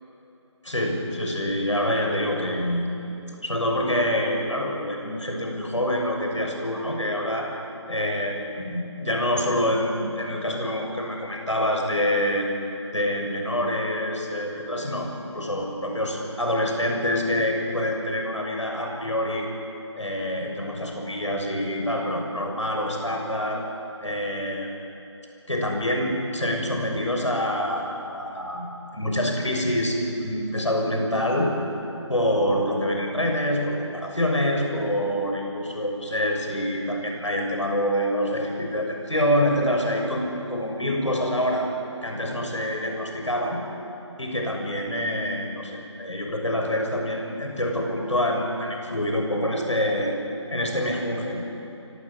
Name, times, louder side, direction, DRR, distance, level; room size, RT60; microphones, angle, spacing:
voice 1, 0.6-2.9 3.4-7.5 7.9-12.5 12.9-19.5 20.0-23.6 24.0-24.7 25.5-31.5 32.1-41.7 42.0-43.6 44.2-50.2 50.5-51.4, left 1 dB, 80° left, 2 dB, 7.0 m, -26 dB
30.0 x 19.0 x 8.5 m, 3.0 s
figure-of-eight pair, 160°, 15 cm